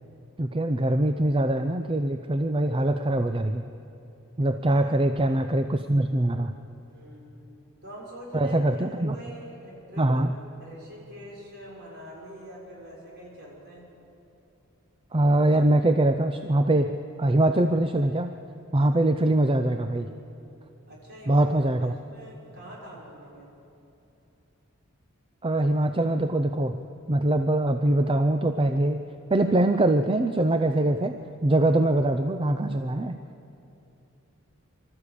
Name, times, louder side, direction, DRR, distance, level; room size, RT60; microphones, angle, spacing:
voice 1, 0.4-3.7 4.4-6.5 8.3-9.2 10.0-10.4 15.1-18.3 18.7-20.1 21.3-21.9 25.4-26.8 27.1-29.0 29.3-31.1 31.4-33.2, right 1 dB, 25° right, 8 dB, 0.5 m, -23 dB
voice 2, 6.9-7.3 7.8-8.8 9.1-10.2 10.6-13.9 20.9-21.5 21.8-23.5, equal, 50° right, -4 dB, 5.8 m, -44 dB
24.5 x 13.5 x 8.5 m, 2.9 s
head